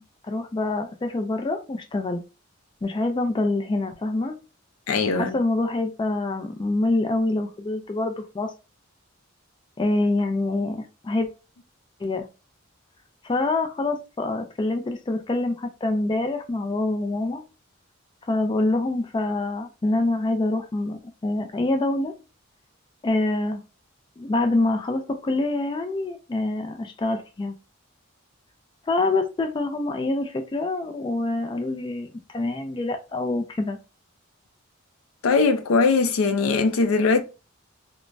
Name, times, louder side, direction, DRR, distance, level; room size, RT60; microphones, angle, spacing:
voice 1, 0.0-2.2 2.8-4.3 5.1-8.5 9.8-11.3 12.0-12.3 13.2-17.4 18.3-22.1 23.0-23.6 24.2-27.6 28.9-33.8, left 2 dB, 25° left, 0.3 m, -26 dB
voice 2, 4.9-5.4 35.2-37.2, left 4 dB, 85° left, 0.4 m, -20 dB
3.2 x 2.1 x 2.5 m
head